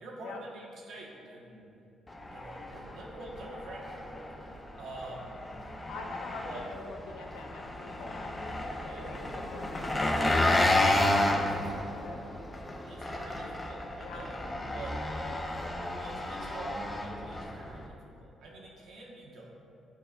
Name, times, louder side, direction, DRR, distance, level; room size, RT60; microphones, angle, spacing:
voice 1, 0.0-1.6 2.3-4.3 4.8-5.3 6.4-6.6 8.8-9.1 9.8-10.2 12.8-14.4 14.7-14.9 16.0-19.5, right 2 dB, 75° right, -4 dB, 1.5 m, -46 dB
Engine, 2.1-17.9, left 1 dB, 20° left, 0.7 m, -32 dB
voice 2, 5.9-9.2 9.5-12.2 14.0-14.3, left 4 dB, 85° left, 3 dB, 0.7 m, -45 dB
11.5 x 4.3 x 2.5 m, 2.7 s
cardioid pair, 90°, 0 cm